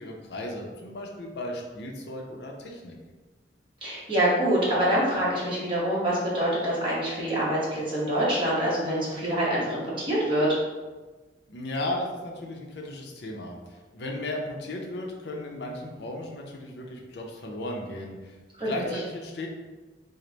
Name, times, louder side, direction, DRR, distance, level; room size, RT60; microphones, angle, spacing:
voice 1, 0.0-3.0 11.5-19.5, left 1 dB, 65° left, 0 dB, 0.6 m, -35 dB
voice 2, 3.8-10.5 18.6-18.7, right 1 dB, 30° right, -7 dB, 1.1 m, -25 dB
3.2 x 2.1 x 3.9 m, 1.3 s
head